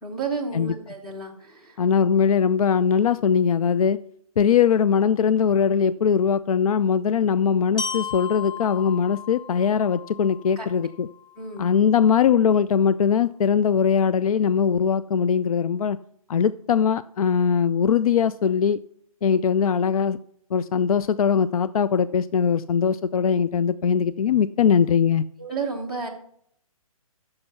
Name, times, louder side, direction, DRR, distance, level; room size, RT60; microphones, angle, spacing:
voice 1, 0.0-1.8 10.6-10.7 11.4-11.7 25.4-26.1, right 4 dB, ahead, -3 dB, 1.1 m, -31 dB
voice 2, 1.8-4.0 4.4-11.1 11.6-16.0 16.3-18.8 19.2-20.2 20.5-25.2, left 7 dB, 70° left, 16 dB, 0.4 m, -21 dB
Glockenspiel, 7.8-11.7, left 6 dB, 40° left, 1.9 m, -36 dB
9.6 x 6.6 x 5.8 m, 0.69 s
hypercardioid pair, 165°, 19 cm